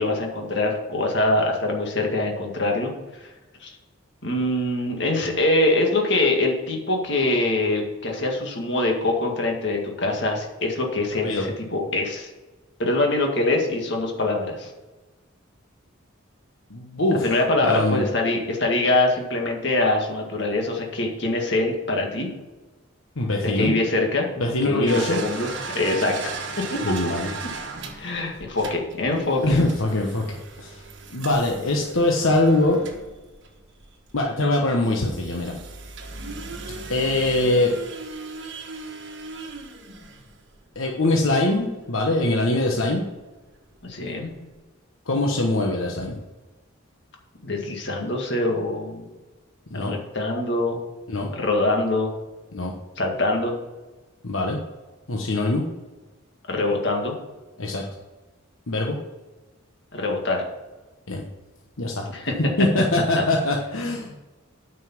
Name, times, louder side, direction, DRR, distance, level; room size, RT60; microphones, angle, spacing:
voice 1, 0.0-2.9 3.2-3.3 3.6-3.7 4.2-12.3 12.8-14.7 17.2-22.3 23.4-24.3 24.6-25.5 25.7-26.2 26.7-27.0 28.0-29.6 43.8-44.3 47.4-49.0 49.7-50.8 51.3-52.1 53.0-53.6 56.5-57.2 59.9-60.4 62.1-62.3 63.1-63.2, left 2 dB, 55° left, 1 dB, 2.0 m, -24 dB
voice 2, 16.7-17.3 17.6-18.1 23.2-23.7 24.4-25.2 26.8-27.3 29.4-30.8 31.1-32.8 34.1-35.6 36.9-37.7 40.7-43.0 45.1-46.2 49.7-49.9 51.1-51.3 52.5-52.7 54.2-54.6 55.1-55.6 57.6-57.8 58.7-59.0 61.1-61.2 61.8-62.1 62.6-64.2, left 2 dB, 80° left, 0 dB, 1.1 m, -23 dB
sound 1, 24.9-34.2 34.8-40.8 42.3-42.4 42.7-42.8 43.9-44.0 44.2-44.4, right 4 dB, 60° right, 1.3 m, -37 dB
9.5 x 5.5 x 7.2 m, 1.2 s
head